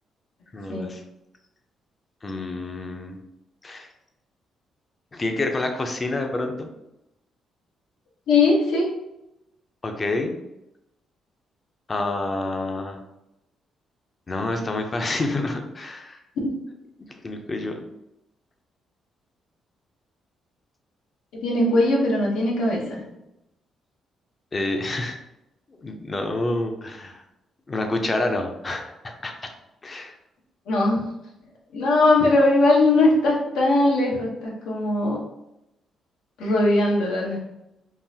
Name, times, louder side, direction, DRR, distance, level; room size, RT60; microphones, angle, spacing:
voice 1, 0.5-1.0 2.2-3.2 3.6-3.9 5.1-6.7 9.8-10.4 11.9-13.0 14.3-16.2 17.2-17.8 24.5-25.2 25.8-27.2 27.7-29.3 29.8-30.1, left 2 dB, 30° left, 4 dB, 0.6 m, -28 dB
voice 2, 8.3-8.9 16.4-16.5 21.3-23.0 30.7-31.1 31.7-35.2 36.4-37.4, left 2 dB, 90° left, -3 dB, 1.0 m, -20 dB
3.8 x 2.5 x 2.8 m, 0.87 s
cardioid pair, 90°, 0 cm